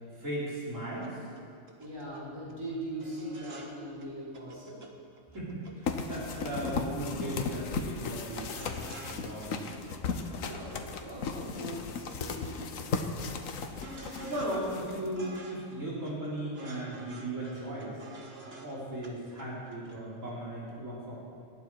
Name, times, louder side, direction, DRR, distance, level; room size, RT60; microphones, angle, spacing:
voice 1, 0.2-1.2 5.3-9.6 13.7-18.0 18.4-21.1, right 1 dB, 70° right, -7 dB, 4.4 m, -37 dB
sound 1, 1.0-1.1 1.4-1.5 1.7-2.2 2.5-2.7 3.0-3.7 4.0-4.1 4.3-4.9 5.2-6.7 7.0-7.2 7.5-7.6 7.9-9.2 9.4-10.3 10.7-11.8 12.1-12.2 12.4-14.6 14.9-15.8 16.1-18.8 19.0-19.1 19.4-20.0 20.3-20.4, right 2 dB, 50° right, 1.7 m, -49 dB
voice 2, 1.8-4.8 10.4-10.7 11.0-12.7, right 1 dB, 20° right, -7 dB, 4.8 m, -40 dB
sound 2, 5.9-15.4, left 5 dB, 85° left, 1.4 m, -36 dB
19.5 x 14.5 x 4.8 m, 2.4 s
omnidirectional pair, 1.4 m